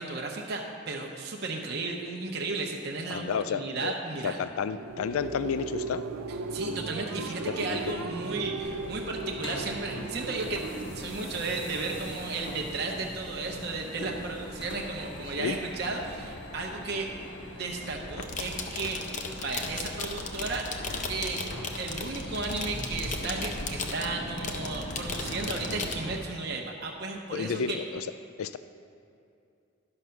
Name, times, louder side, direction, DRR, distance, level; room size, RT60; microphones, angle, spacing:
voice 1, 0.0-4.4 6.3-10.7 10.9-17.1 17.6-20.7 21.1-21.4 21.8-27.8, right 3 dB, 50° right, 0 dB, 0.8 m, -34 dB
voice 2, 3.1-3.9 4.2-6.0 7.7-8.1 15.4-15.6 27.3-28.1 28.4-28.6, left 6 dB, 85° left, 12 dB, 0.4 m, -31 dB
sound 1, 4.4-13.1, right 3 dB, 80° right, 0.5 m, -38 dB
sound 2, 8.6-26.2, equal, 55° left, 1.2 m, -40 dB
sound 3, 18.1-26.0, left 4 dB, 35° left, 0.6 m, -37 dB
10.5 x 6.2 x 5.7 m, 2.5 s
head